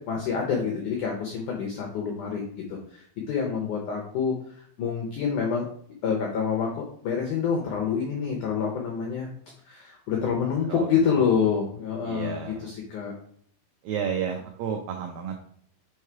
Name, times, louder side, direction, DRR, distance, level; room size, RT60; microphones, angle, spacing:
voice 1, 0.1-4.4 4.8-5.7 6.0-9.3 9.6-13.1, left 6 dB, 85° left, 0 dB, 1.8 m, -27 dB
voice 2, 10.7-11.2 12.0-12.7 13.8-15.4, right 7 dB, 85° right, 2 dB, 2.0 m, -32 dB
6.3 x 3.3 x 4.6 m, 0.64 s
omnidirectional pair, 4.8 m